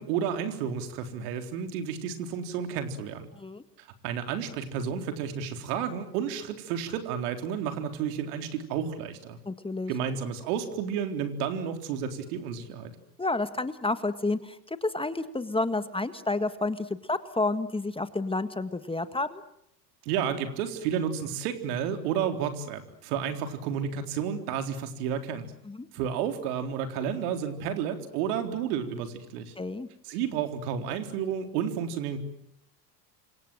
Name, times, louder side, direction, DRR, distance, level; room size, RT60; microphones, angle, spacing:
voice 1, 0.0-3.3 3.8-9.4 9.9-12.9 20.1-25.5 25.9-29.5 30.1-32.2, right 8 dB, 65° right, 7 dB, 4.0 m, -31 dB
voice 2, 9.5-9.9 13.2-19.4 25.7-25.9 29.6-29.9, left 2 dB, 10° left, 12 dB, 1.6 m, -30 dB
29.5 x 25.5 x 7.8 m, 0.78 s
hypercardioid pair, 80°, 49 cm